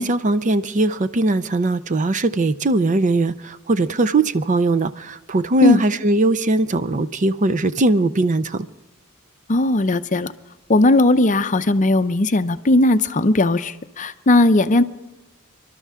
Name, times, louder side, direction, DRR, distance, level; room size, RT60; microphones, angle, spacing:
voice 1, 0.0-8.7, right 2 dB, 35° right, 0.5 m, -20 dB
voice 2, 9.5-10.3 10.7-14.8, left 2 dB, 35° left, 0.6 m, -17 dB
26.0 x 12.5 x 3.6 m
head